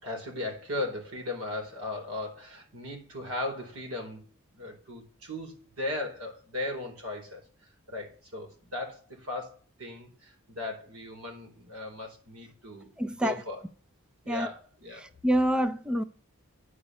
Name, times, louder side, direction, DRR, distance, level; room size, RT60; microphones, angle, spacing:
voice 1, 0.0-4.2 4.5-7.4 7.9-12.9 13.2-13.6 14.2-15.1, left 2 dB, 85° right, 4.2 m, -37 dB
voice 2, 13.0-13.4 14.3-14.5 15.0-16.0, equal, 5° right, 0.4 m, -27 dB
9.7 x 5.3 x 8.1 m
head